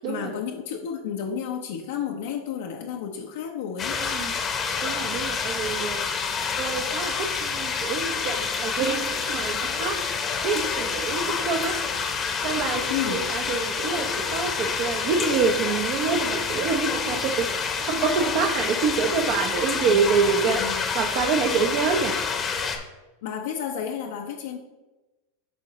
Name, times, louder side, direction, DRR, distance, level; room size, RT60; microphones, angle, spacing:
voice 1, 0.0-4.0 12.9-13.3 20.5-20.8 23.2-24.6, left 8 dB, 75° left, 1 dB, 0.7 m, -31 dB
sound 1, 3.8-22.8, left 5 dB, 25° left, 0.8 m, -28 dB
voice 2, 4.0-4.3 4.8-6.0 6.6-10.0 10.4-11.8 12.4-17.5 17.8-22.2, right 5 dB, 50° right, 2 dB, 0.7 m, -26 dB
11.0 x 3.7 x 3.0 m, 1.1 s
supercardioid pair, 135°, 0 cm